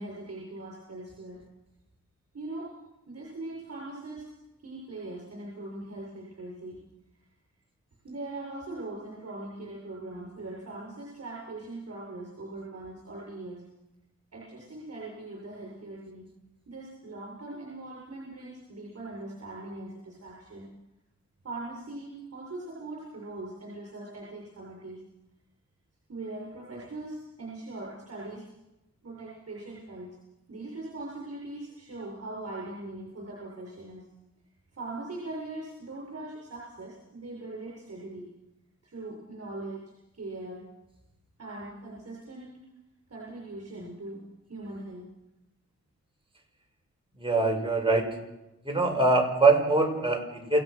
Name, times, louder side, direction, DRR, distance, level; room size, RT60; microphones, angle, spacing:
voice 1, 0.0-1.4 2.3-2.7 3.1-4.3 4.6-6.8 8.0-13.6 14.3-16.3 16.7-20.7 21.4-25.0 26.1-28.5 29.0-30.1 30.5-34.1 34.7-38.2 38.8-40.6 41.4-42.5 43.1-44.2 44.5-45.0, right 2 dB, 55° right, -2 dB, 7.8 m, -40 dB
voice 2, 47.2-48.1 48.6-50.6, right 3 dB, 20° right, 1 dB, 6.2 m, -23 dB
28.0 x 17.0 x 6.4 m, 0.98 s
wide cardioid pair, 75°, 30 cm